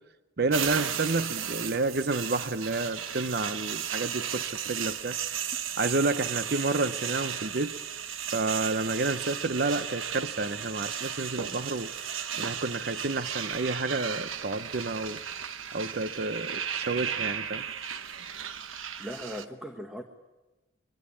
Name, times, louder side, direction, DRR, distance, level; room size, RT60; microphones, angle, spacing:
voice 1, 0.4-5.2 5.8-7.7 8.3-11.9 12.4-15.2 15.7-17.6, right 3 dB, 50° right, 11 dB, 0.7 m, -30 dB
sound 1, 0.5-19.5, right 8 dB, 85° right, 1.1 m, -35 dB
voice 2, 19.0-20.0, equal, 5° right, 4 dB, 1.4 m, -38 dB
24.0 x 23.0 x 8.6 m, 1.1 s
head